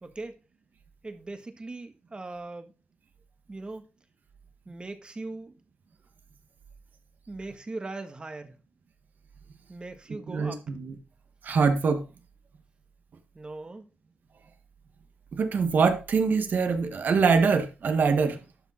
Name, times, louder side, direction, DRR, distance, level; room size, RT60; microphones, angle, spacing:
voice 1, 0.0-0.4 1.0-2.7 3.5-3.8 4.6-5.5 7.3-8.6 9.7-10.6 13.3-13.9, right 2 dB, 30° right, 1.6 m, -39 dB
voice 2, 10.3-10.9 11.4-12.0 15.3-18.4, right 5 dB, 65° right, 1.7 m, -24 dB
12.0 x 5.4 x 4.2 m
cardioid pair, 90°, 3 cm